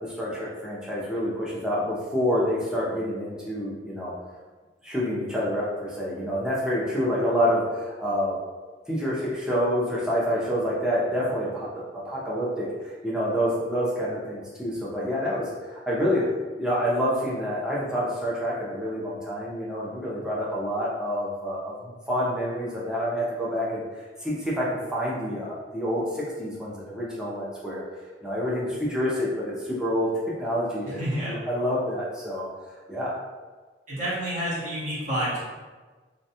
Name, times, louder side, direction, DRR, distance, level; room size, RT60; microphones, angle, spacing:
voice 1, 0.0-4.1 4.8-8.4 8.9-16.3 16.6-27.8 28.2-30.1 30.4-32.5 32.9-33.2, equal, 5° right, -7 dB, 0.5 m, -28 dB
voice 2, 31.0-31.3 33.9-35.4, equal, 45° right, -9 dB, 1.0 m, -28 dB
2.5 x 2.2 x 2.7 m, 1.3 s
head